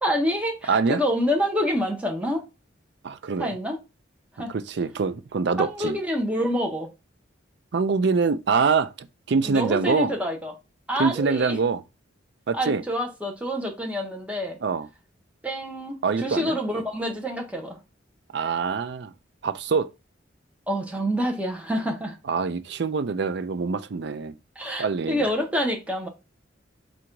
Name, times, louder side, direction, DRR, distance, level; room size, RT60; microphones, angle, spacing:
voice 1, 0.0-2.4 3.4-3.8 4.4-4.5 5.6-6.9 9.4-10.5 10.9-11.6 12.5-14.6 15.4-17.8 20.7-22.2 24.6-26.1, equal, 5° right, 1.0 m, -27 dB
voice 2, 0.7-1.0 3.0-3.5 4.5-6.0 7.7-10.1 11.0-11.8 12.5-12.8 14.6-14.9 16.0-16.6 18.3-19.1 19.4-19.9 22.3-24.3 24.8-25.3, right 5 dB, 65° right, 0.5 m, -24 dB
3.9 x 2.5 x 4.5 m
head